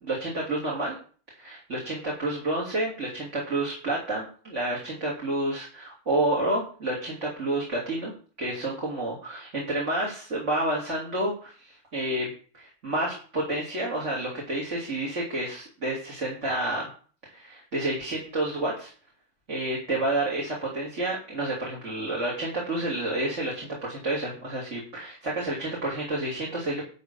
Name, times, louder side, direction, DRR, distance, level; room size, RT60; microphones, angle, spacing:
voice 1, 0.0-1.0 1.4-8.1 8.4-16.9 17.3-18.9 19.5-26.8, right 1 dB, 35° right, -4 dB, 3.5 m, -29 dB
12.0 x 5.3 x 7.1 m, 0.42 s
omnidirectional pair, 2.1 m